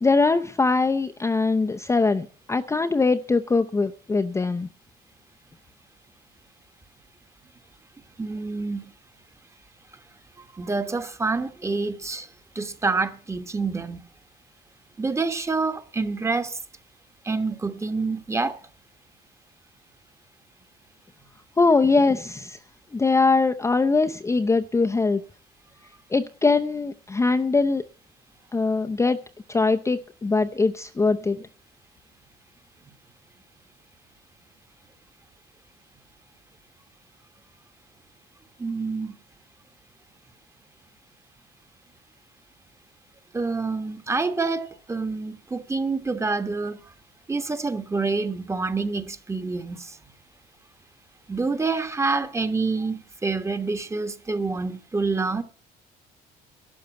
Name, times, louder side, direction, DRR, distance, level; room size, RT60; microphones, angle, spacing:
voice 1, 0.0-4.7 21.6-22.6 22.9-25.2 26.1-27.8 28.5-29.2 29.5-31.5, left 3 dB, 15° left, 0.6 m, -22 dB
voice 2, 8.2-8.8 10.5-12.3 12.5-14.0 15.0-16.6 17.2-18.6 38.6-39.1 43.3-46.8 47.3-49.9 51.3-55.4, right 3 dB, 15° right, 1.2 m, -27 dB
12.0 x 6.9 x 7.8 m
cardioid pair, 110°, 17 cm